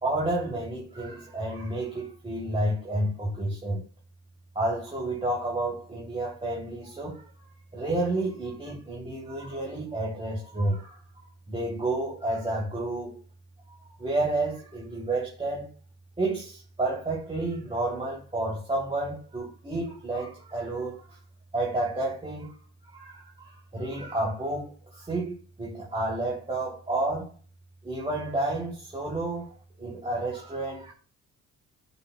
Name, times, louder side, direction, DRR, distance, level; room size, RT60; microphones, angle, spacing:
voice 1, 0.0-3.8 4.5-7.3 7.7-11.0 11.5-13.2 13.7-15.7 16.2-21.2 21.5-22.6 22.8-27.4 27.8-30.9, right 2 dB, 20° right, 2.9 m, -30 dB
13.5 x 6.1 x 2.3 m
cardioid pair, 90°, 30 cm